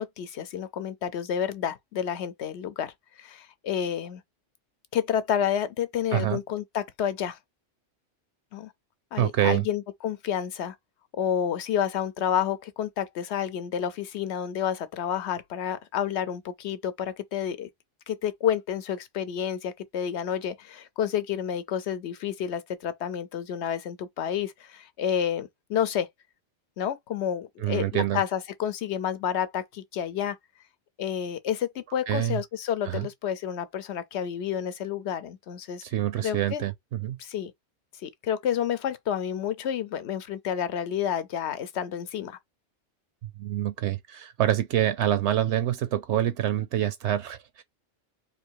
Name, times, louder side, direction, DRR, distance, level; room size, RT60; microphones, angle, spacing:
voice 1, 0.0-4.2 4.9-7.4 8.5-8.7 9.1-10.8 11.1-17.7 18.1-26.1 26.8-30.4 31.0-35.8 36.2-36.6 37.2-37.5 38.0-42.4, left 9 dB, 70° left, 1.0 m, -30 dB
voice 2, 9.2-9.7 27.6-28.2 32.1-32.4 32.8-33.1 35.8-37.2 43.2-47.6, right 12 dB, 75° right, 0.9 m, -26 dB
3.3 x 2.7 x 4.6 m
omnidirectional pair, 1.2 m